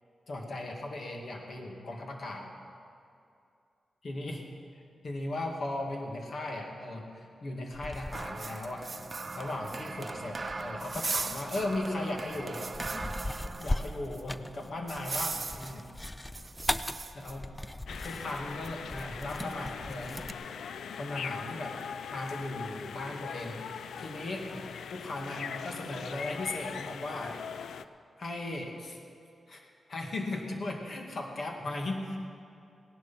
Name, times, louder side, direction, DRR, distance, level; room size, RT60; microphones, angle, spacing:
voice 1, 0.3-2.4 4.0-4.5 5.0-8.9 9.3-12.6 13.4-15.9 17.1-17.5 18.0-20.4 21.0-21.8 22.1-24.6 24.9-27.4 28.2-29.0 29.5-32.2, left 2 dB, 60° left, 1 dB, 2.2 m, -37 dB
sound 1, 7.7-20.3, left 1 dB, 15° left, 0.5 m, -39 dB
sound 2, 8.1-13.9 14.1-14.2 14.9-15.8 16.3-17.3, right 3 dB, 40° right, 0.7 m, -38 dB
sound 3, 17.9-27.9, left 7 dB, 90° left, 0.4 m, -41 dB
17.0 x 11.0 x 5.8 m, 2.5 s
cardioid pair, 70°, 0 cm